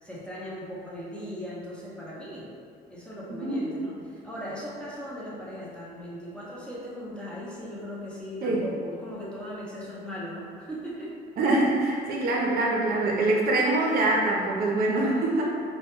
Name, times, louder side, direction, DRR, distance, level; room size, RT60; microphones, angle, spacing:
voice 1, 0.0-2.5 2.9-11.1 12.1-12.3, equal, 5° left, -7 dB, 0.5 m, -38 dB
voice 2, 11.4-15.4, right 2 dB, 60° right, -3 dB, 0.5 m, -24 dB
2.1 x 2.0 x 2.9 m, 2.2 s
cardioid pair, 110°, 17 cm